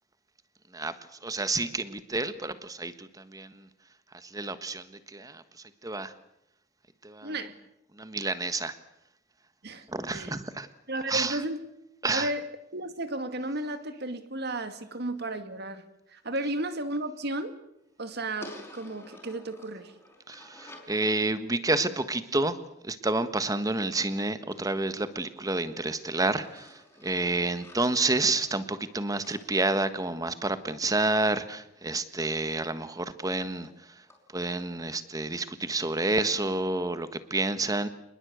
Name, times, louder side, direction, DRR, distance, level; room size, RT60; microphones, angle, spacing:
voice 1, 1.2-3.6 4.2-4.8 5.1-5.4 5.8-6.1 7.0-7.3 8.0-8.7 9.9-10.7 11.1-11.4 12.0-12.3 20.3-22.6 22.8-26.7 27.0-33.7 34.3-37.9, right 2 dB, 20° right, 12 dB, 1.4 m, -29 dB
voice 2, 7.2-7.5 9.6-9.9 10.1-10.4 10.9-11.6 12.1-15.8 16.1-17.6 18.0-19.9, right 1 dB, 55° right, 10 dB, 2.2 m, -33 dB
sound 1, 18.4-21.0 24.5-25.9 26.4-30.5 32.4-32.5 32.8-32.9 33.2-33.3 33.6-33.7 34.1-34.2 34.6-34.7, left 1 dB, 10° left, 5.4 m, -51 dB
27.0 x 21.0 x 8.1 m, 0.83 s
head